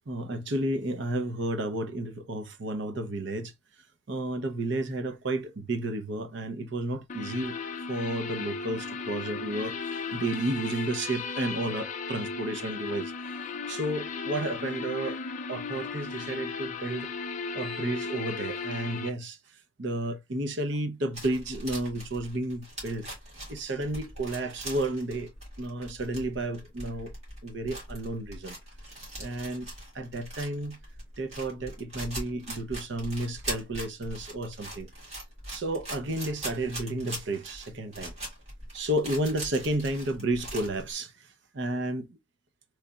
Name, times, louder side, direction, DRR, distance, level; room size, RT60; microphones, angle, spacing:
voice 1, 0.1-3.5 4.1-7.6 7.9-13.1 13.7-15.2 15.5-17.1 17.5-19.4 19.8-23.1 23.5-25.3 25.6-27.1 27.4-28.6 29.2-29.7 29.9-30.8 31.2-34.9 35.5-38.1 38.7-42.2, right 1 dB, 55° right, 0.6 m, -32 dB
sound 1, 7.1-19.1, left 5 dB, 35° left, 0.4 m, -36 dB
sound 2, 21.1-40.8, right 1 dB, 30° right, 2.1 m, -41 dB
4.0 x 3.2 x 2.2 m
head